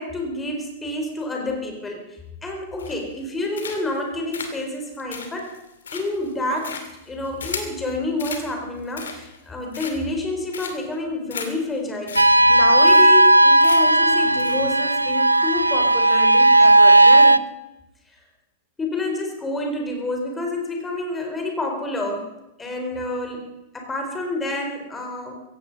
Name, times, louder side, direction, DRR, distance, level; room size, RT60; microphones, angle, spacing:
voice 1, 0.0-5.6 5.9-17.4 18.8-22.3 22.6-25.4, left 2 dB, 15° left, 2 dB, 4.3 m, -29 dB
sound 1, 2.8-3.2 3.5-4.0 4.3-7.8 8.2-8.5 8.8-9.4 9.7-10.2 10.5-10.9 11.3-11.5 11.7-11.8 12.1-12.2 12.5-12.6 12.9-13.3 13.6-14.0 14.4-14.6, left 6 dB, 70° left, 2.5 m, -35 dB
sound 2, 12.2-17.4, right 2 dB, 90° right, 0.5 m, -14 dB
16.0 x 16.0 x 5.4 m, 0.94 s
figure-of-eight pair, 95°, 0 cm